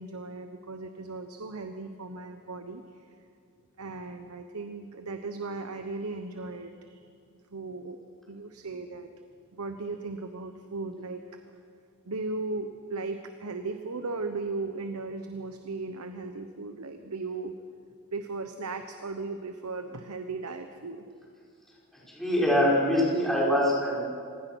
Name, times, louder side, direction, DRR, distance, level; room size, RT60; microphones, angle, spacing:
voice 1, 0.0-2.8 3.8-7.0 7.5-8.0 8.3-9.1 9.5-11.4 12.1-17.5 18.1-21.0, right 3 dB, 75° right, 7 dB, 1.1 m, -37 dB
voice 2, 22.1-24.0, equal, ahead, -6 dB, 6.3 m, -24 dB
26.0 x 19.0 x 6.3 m, 2.3 s
head